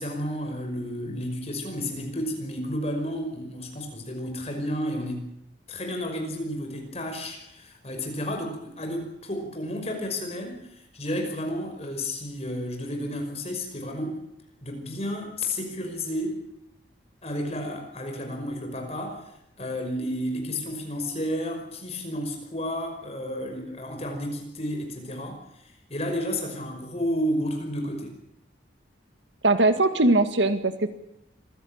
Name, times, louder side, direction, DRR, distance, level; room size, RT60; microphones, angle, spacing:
voice 1, 0.0-5.2 5.7-14.2 14.6-16.4 17.2-19.3 19.6-28.1, equal, 35° left, 3 dB, 5.6 m, -32 dB
voice 2, 29.4-30.9, right 2 dB, 85° right, 9 dB, 2.0 m, -21 dB
25.5 x 15.5 x 8.9 m, 0.81 s
head